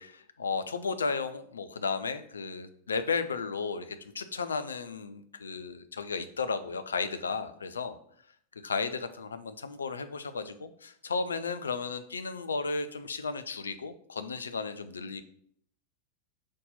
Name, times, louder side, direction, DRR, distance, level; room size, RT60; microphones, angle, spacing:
voice 1, 0.0-8.0 8.6-15.2, left 4 dB, 70° left, 10 dB, 0.5 m, -34 dB
5.3 x 4.1 x 5.5 m, 0.64 s
figure-of-eight pair, 90°, 0 cm